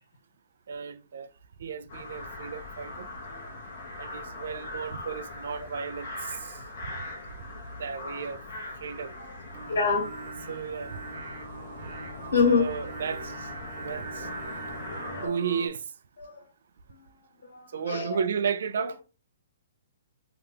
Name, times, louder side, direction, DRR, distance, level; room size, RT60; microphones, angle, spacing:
voice 1, 0.7-1.3 1.6-3.1 4.0-6.6 6.8-6.9 7.8-8.4 8.8-9.1 10.5-11.0 12.4-13.5 13.8-14.3 15.2-15.8 17.7-19.0, right 6 dB, 60° right, 0.3 m, -33 dB
sound 1, 1.9-15.3, left 2 dB, 45° left, 0.9 m, -41 dB
Singing, 9.5-15.7, right 4 dB, 35° right, 0.8 m, -41 dB
voice 2, 9.7-10.3 12.3-12.7 14.8-15.4 16.2-16.4 17.5-18.2 18.8-18.9, left 5 dB, 85° left, 1.4 m, -27 dB
2.8 x 2.4 x 3.4 m
hypercardioid pair, 170°, 0 cm